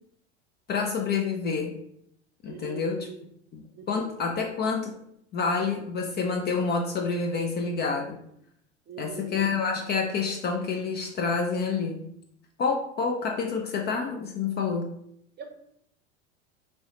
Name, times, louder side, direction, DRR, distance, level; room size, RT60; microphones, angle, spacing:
voice 1, 0.7-1.8 2.4-3.1 3.5-4.9 5.3-8.2 9.0-12.1 12.6-14.9, left 5 dB, 30° left, 3 dB, 0.4 m, -28 dB
voice 2, 2.5-3.2 3.7-4.1 8.9-9.4 15.4-15.5, right 6 dB, 30° right, 4 dB, 0.7 m, -42 dB
3.0 x 3.0 x 2.8 m, 0.72 s
hypercardioid pair, 85°, 35 cm